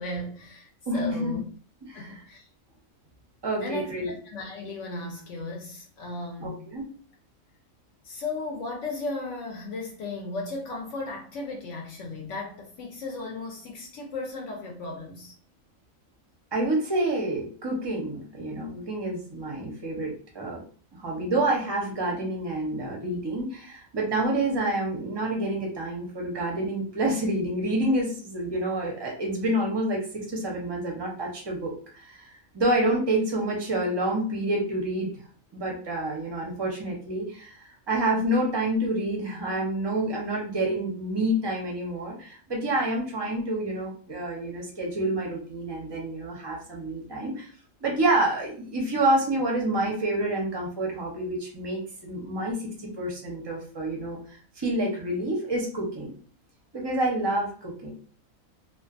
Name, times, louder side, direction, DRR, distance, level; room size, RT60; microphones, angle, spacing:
voice 1, 0.0-1.4 1.9-2.5 3.5-6.6 8.0-15.3, left 3 dB, 70° left, 0.8 m, -36 dB
voice 2, 0.9-1.4 1.9-2.2 3.4-4.1 6.4-6.9 16.5-20.6 21.0-35.1 35.5-47.5 47.8-56.1 56.7-57.9, right 1 dB, 30° right, 0.5 m, -28 dB
2.4 x 2.3 x 2.4 m
omnidirectional pair, 1.4 m